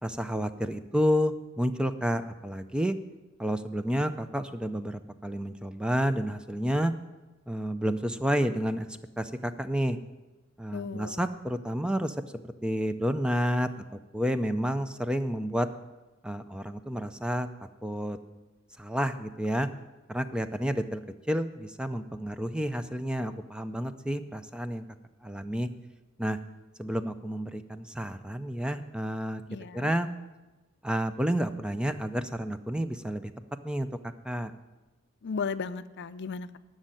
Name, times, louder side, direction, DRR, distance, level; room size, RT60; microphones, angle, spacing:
voice 1, 0.0-3.0 3.4-6.9 7.5-8.9 9.2-10.0 10.6-12.2 12.6-13.7 14.1-15.7 16.2-17.5 17.8-18.2 18.8-19.7 20.1-21.0 21.3-24.8 25.2-25.7 26.2-26.4 26.8-29.4 29.7-30.1 30.8-33.3 33.6-33.9 34.2-34.5, equal, 5° right, 10 dB, 0.4 m, -30 dB
voice 2, 10.7-11.2 29.5-29.9 35.2-36.6, left 5 dB, 55° left, 13 dB, 0.5 m, -35 dB
11.5 x 6.4 x 8.9 m, 1.1 s
head